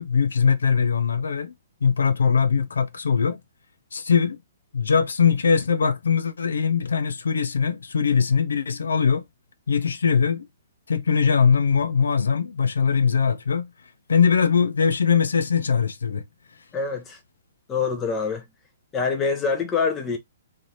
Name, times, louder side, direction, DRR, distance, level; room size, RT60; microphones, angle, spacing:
voice 1, 0.0-1.5 1.8-3.4 3.9-4.4 4.7-9.2 9.7-10.4 10.9-13.7 14.1-16.2, left 6 dB, 65° left, 0.6 m, -21 dB
voice 2, 16.7-17.2 17.7-18.4 18.9-20.2, left 5 dB, 20° left, 0.9 m, -25 dB
3.7 x 3.3 x 2.9 m
figure-of-eight pair, 120°, 0 cm